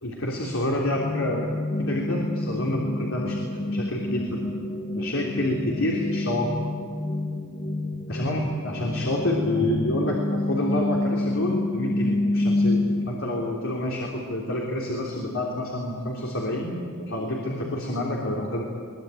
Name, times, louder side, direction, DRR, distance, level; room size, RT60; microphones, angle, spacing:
voice 1, 0.0-4.5 4.9-6.5 8.1-18.6, left 1 dB, 70° left, -2 dB, 3.4 m, -28 dB
sound 1, 0.9-13.1, left 2 dB, 40° left, 1.7 m, -28 dB
22.0 x 21.5 x 9.3 m, 2.1 s
head